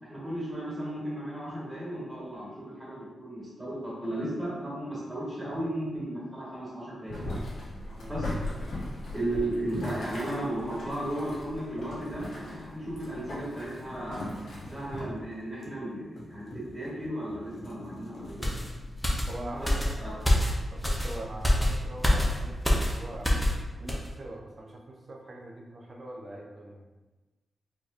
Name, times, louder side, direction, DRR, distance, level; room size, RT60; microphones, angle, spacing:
voice 1, 0.0-7.4 8.1-8.3 9.1-14.3 14.7-18.7 19.6-19.7 20.0-20.1, right 1 dB, 15° right, -8 dB, 1.4 m, -35 dB
Boiling, 7.1-15.0, left 1 dB, 80° left, 1.1 m, -38 dB
sound 1, 11.4-13.0 13.3-20.6, left 1 dB, 65° left, 0.7 m, -47 dB
sound 2, 18.4-23.6 23.9-24.1, left 1 dB, 5° left, 0.6 m, -26 dB
voice 2, 19.3-20.2 20.7-23.3 23.8-26.8, right 1 dB, 40° right, -1 dB, 0.6 m, -42 dB
4.4 x 2.9 x 2.4 m, 1.2 s
wide cardioid pair, 125°, 0 cm